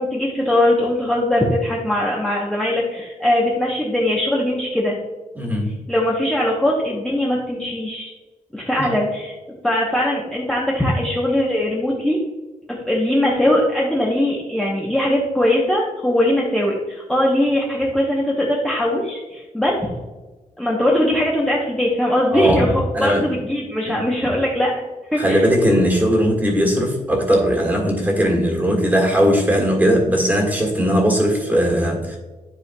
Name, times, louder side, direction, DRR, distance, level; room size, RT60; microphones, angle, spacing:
voice 1, 0.0-5.0 5.9-8.1 8.5-9.3 9.6-12.2 12.7-19.9 20.6-24.8 25.1-25.5 29.6-29.7, left 1 dB, 5° left, -4 dB, 0.8 m, -20 dB
voice 2, 5.3-5.7 8.8-8.9 22.3-22.6 22.9-23.3 23.8-24.0 25.2-32.2, equal, 10° right, 0 dB, 1.6 m, -18 dB
10.5 x 4.4 x 2.2 m, 1.2 s
wide cardioid pair, 155°, 14 cm